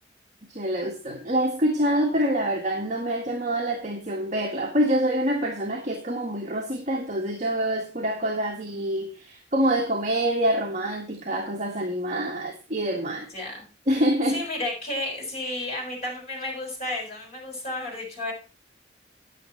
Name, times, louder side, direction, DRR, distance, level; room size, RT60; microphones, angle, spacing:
voice 1, 0.5-13.3 13.9-14.5, right 1 dB, 40° right, 1 dB, 1.7 m, -26 dB
voice 2, 13.1-13.7 14.3-18.3, left 1 dB, 35° left, 0 dB, 6.4 m, -32 dB
9.8 x 9.2 x 4.4 m, 0.32 s
head